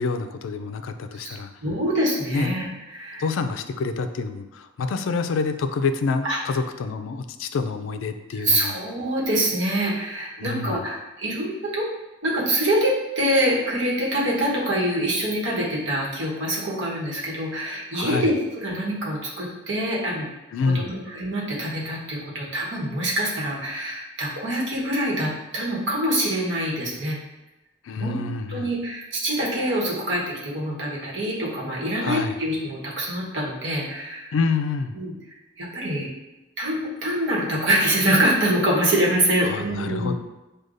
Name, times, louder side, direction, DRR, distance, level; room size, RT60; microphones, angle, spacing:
voice 1, 0.0-1.5 2.3-2.7 3.2-8.7 10.4-10.8 17.9-18.3 20.5-21.0 27.8-28.7 32.0-32.4 34.3-35.0 39.4-40.1, left 4 dB, 85° left, 8 dB, 0.3 m, -27 dB
voice 2, 1.6-2.7 2.9-3.2 6.2-6.4 8.4-11.9 12.2-20.3 20.9-27.2 28.0-28.2 28.5-34.3 35.0-35.1 35.6-36.1 36.6-40.1, right 1 dB, 75° right, -5 dB, 1.1 m, -25 dB
6.2 x 2.3 x 2.5 m, 1.0 s
head